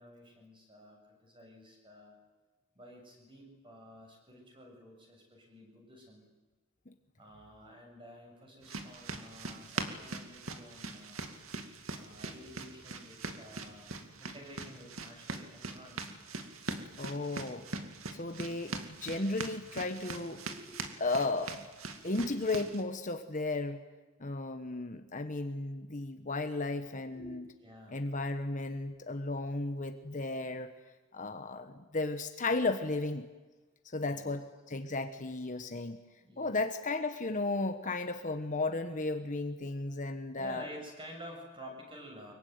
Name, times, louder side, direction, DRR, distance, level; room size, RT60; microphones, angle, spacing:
voice 1, 0.0-2.2 2.8-6.2 7.2-11.3 11.9-16.2 20.5-20.8 27.1-27.3 27.6-28.0 34.0-34.3 36.2-36.6 40.4-42.3, equal, 25° right, 1 dB, 7.4 m, -51 dB
sound 1, 8.6-22.8, right 3 dB, 75° right, 2.4 m, -42 dB
voice 2, 17.0-17.7 18.1-20.4 21.0-21.7 22.0-23.8 24.2-27.4 27.9-30.7 31.1-33.3 33.9-36.0 36.4-40.7, left 2 dB, 35° left, 7 dB, 1.3 m, -34 dB
24.5 x 23.0 x 9.6 m, 1.2 s
head